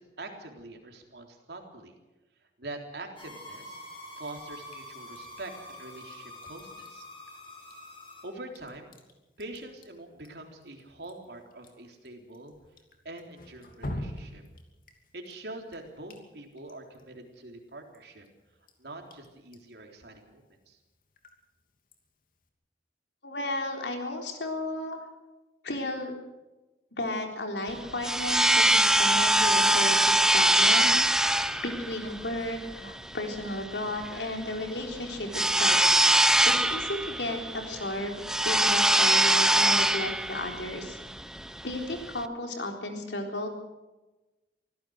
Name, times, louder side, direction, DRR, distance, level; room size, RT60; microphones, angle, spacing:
voice 1, 0.0-1.9 2.6-3.8 4.1-7.1 8.2-8.9 9.4-12.5 13.0-14.4 15.1-18.3 18.8-20.8, right 2 dB, 70° right, 3 dB, 3.6 m, -44 dB
sound 1, 3.2-8.3, left 1 dB, 30° left, 5.0 m, -46 dB
Drip, 4.2-22.5, left 1 dB, 50° left, 2.9 m, -48 dB
voice 2, 23.2-25.0 25.6-26.1 27.0-35.8 36.5-41.0 41.6-43.5, left 1 dB, 90° left, 3 dB, 3.9 m, -34 dB
sound 2, 27.7-42.2, right 1 dB, 5° right, 0.6 m, -23 dB
24.5 x 16.5 x 6.5 m, 1.1 s
head